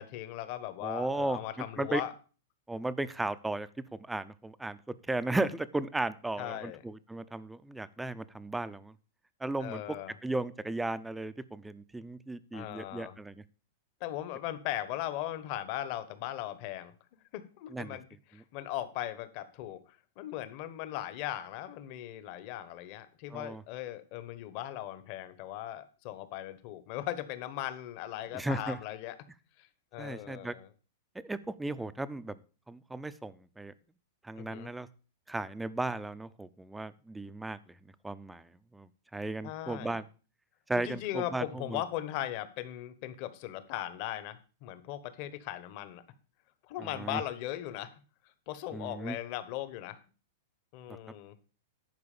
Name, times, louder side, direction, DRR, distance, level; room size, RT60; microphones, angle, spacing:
voice 1, 0.0-2.1 6.4-6.8 9.6-10.1 12.5-13.2 14.0-16.9 17.3-18.0 18.3-29.2 29.6-30.7 34.4-34.7 39.4-40.0 40.7-46.0 46.7-47.9 48.5-50.0 50.7-51.3, left 13 dB, 45° left, 13 dB, 1.2 m, -38 dB
voice 2, 0.8-1.4 1.8-2.0 2.7-4.8 5.1-8.9 9.4-9.8 10.2-13.4 17.7-18.0 23.3-23.6 28.3-28.8 30.0-30.5 31.2-32.4 32.7-33.7 34.2-34.9 35.3-37.6 38.0-40.0 40.7-41.8 46.8-47.2 48.7-49.2, right 2 dB, 5° right, 14 dB, 0.5 m, -35 dB
11.0 x 4.8 x 6.8 m, 0.37 s
hypercardioid pair, 140°, 0 cm